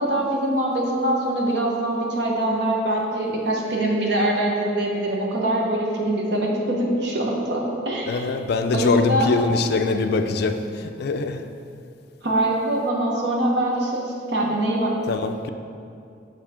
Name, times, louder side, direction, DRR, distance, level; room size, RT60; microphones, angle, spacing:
voice 1, 0.0-8.2 8.7-9.3 12.2-14.9, right 1 dB, 60° right, -1 dB, 1.0 m, -23 dB
voice 2, 8.1-11.4 15.1-15.5, left 3 dB, 55° left, 7 dB, 0.4 m, -23 dB
7.4 x 5.5 x 3.6 m, 2.5 s
head